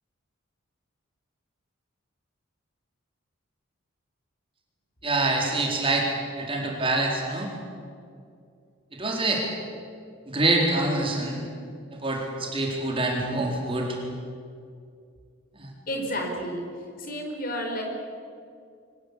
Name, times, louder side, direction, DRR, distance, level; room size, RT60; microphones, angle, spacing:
voice 1, 5.0-6.1 6.4-7.5 8.9-9.4 10.3-11.4 11.9-14.0 15.6-15.7, right 2 dB, 25° right, -1 dB, 4.2 m, -25 dB
voice 2, 15.9-16.7 17.0-17.8, equal, 40° left, 3 dB, 4.4 m, -31 dB
25.0 x 19.0 x 8.4 m, 2.3 s
head